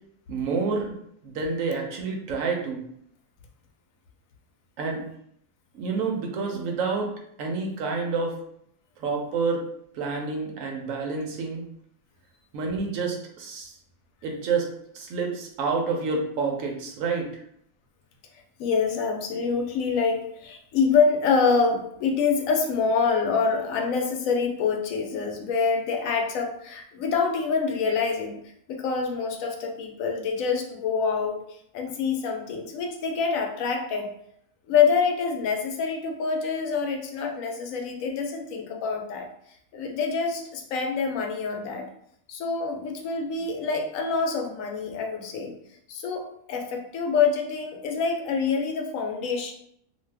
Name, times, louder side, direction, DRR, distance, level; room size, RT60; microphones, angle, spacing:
voice 1, 0.3-1.0 1.2-2.8 4.8-5.0 5.7-7.1 7.4-8.3 9.0-9.6 9.9-11.6 12.5-13.7 14.2-14.7 14.9-17.3, right 4 dB, 70° right, 1 dB, 0.9 m, -28 dB
voice 2, 18.6-28.4 28.7-34.1 34.7-39.3 39.7-41.9 42.3-45.5 45.9-49.5, left 5 dB, 70° left, 3 dB, 0.9 m, -26 dB
2.6 x 2.3 x 3.3 m, 0.69 s
omnidirectional pair, 1.6 m